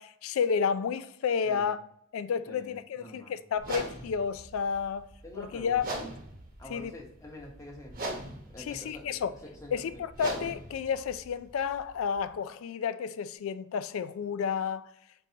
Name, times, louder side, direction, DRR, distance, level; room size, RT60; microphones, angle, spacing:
voice 1, 0.0-1.8 2.1-5.1 5.3-5.9 6.7-6.9 8.6-9.3 9.7-14.9, left 6 dB, 90° left, 0.3 m, -31 dB
voice 2, 3.0-3.3 5.2-5.9 6.6-7.9 8.5-9.1 9.4-9.9, left 1 dB, 15° left, 1.0 m, -46 dB
sound 1, 3.6-12.3, right 1 dB, 45° right, 1.0 m, -41 dB
4.7 x 3.8 x 2.7 m
head